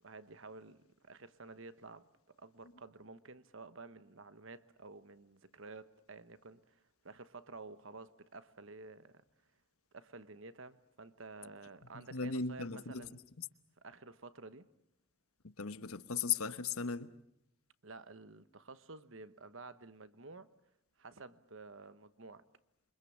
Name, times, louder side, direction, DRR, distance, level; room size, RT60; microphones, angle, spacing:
voice 1, 0.0-2.1 2.4-9.2 9.9-13.2 13.8-14.7 17.8-20.5 21.0-22.4, right 3 dB, 60° right, 1.1 m, -52 dB
voice 2, 11.9-13.1 13.4-13.5 15.6-17.1, left 6 dB, 85° left, 1.2 m, -37 dB
28.0 x 25.0 x 7.2 m
head